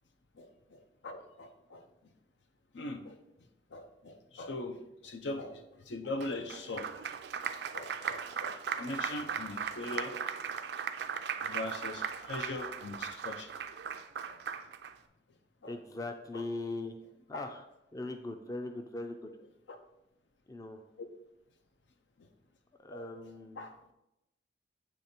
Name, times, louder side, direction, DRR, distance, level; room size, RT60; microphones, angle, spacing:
voice 1, 0.3-2.1 2.7-3.2 3.7-6.9 7.7-10.3 11.4-13.5 14.3-14.4 15.6-15.8 16.3-16.5 17.3-17.5 19.7-19.8 21.0-21.1 22.2-22.3 22.9-23.0 23.6-23.9, left 2 dB, 80° left, 7 dB, 0.6 m, -41 dB
Applause, 6.2-14.9, right 7 dB, 65° right, 0.4 m, -38 dB
voice 2, 15.7-17.0 17.3-17.6 17.9-19.3 20.5-20.8 22.8-23.7, left 2 dB, 20° left, 6 dB, 0.4 m, -40 dB
8.2 x 3.2 x 4.3 m, 0.89 s
head